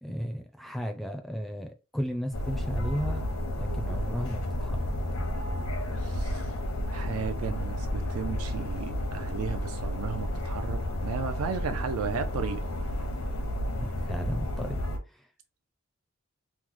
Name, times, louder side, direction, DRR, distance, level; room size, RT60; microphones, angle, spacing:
voice 1, 0.0-3.2 3.6-5.0 13.7-14.8, equal, ahead, 0.4 m, -34 dB
sound 1, 2.3-15.0, left 1 dB, 75° left, 0.7 m, -32 dB
voice 2, 6.0-6.5 6.9-12.6, right 6 dB, 80° right, 0.4 m, -34 dB
3.0 x 2.0 x 3.6 m
head